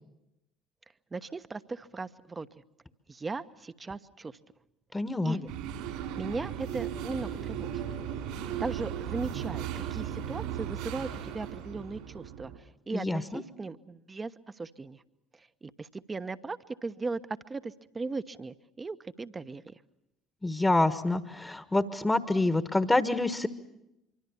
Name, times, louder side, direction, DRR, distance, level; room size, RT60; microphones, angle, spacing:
voice 1, 1.1-2.5 3.1-4.4 5.2-5.5 6.2-7.8 8.6-15.0 15.6-19.7, right 3 dB, 25° right, 11 dB, 1.1 m, -38 dB
voice 2, 4.9-5.4 12.9-13.4 20.4-23.5, left 2 dB, 15° left, 10 dB, 1.4 m, -27 dB
sound 1, 5.5-12.6, right 9 dB, 65° right, 4.1 m, -36 dB
25.5 x 24.5 x 7.1 m, 0.89 s
figure-of-eight pair, 55°, 0 cm